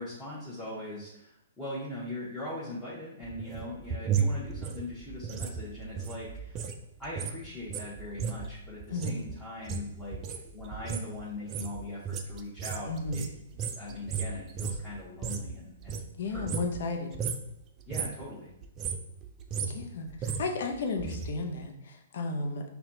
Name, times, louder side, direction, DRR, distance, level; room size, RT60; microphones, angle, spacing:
voice 1, 0.0-6.7 7.0-13.2 13.7-16.6 17.9-18.5, left 1 dB, 10° left, -10 dB, 1.1 m, -41 dB
sound 1, 3.2-6.8 7.0-15.5 15.8-16.9 17.1-17.5 17.8-18.3 18.6-21.3 21.6-21.7, right 6 dB, 30° right, 0.4 m, -35 dB
voice 2, 12.9-13.2 16.2-17.1 19.6-22.6, left 3 dB, 60° left, 4 dB, 0.7 m, -34 dB
5.6 x 2.3 x 2.7 m, 0.78 s
hypercardioid pair, 120°, 0 cm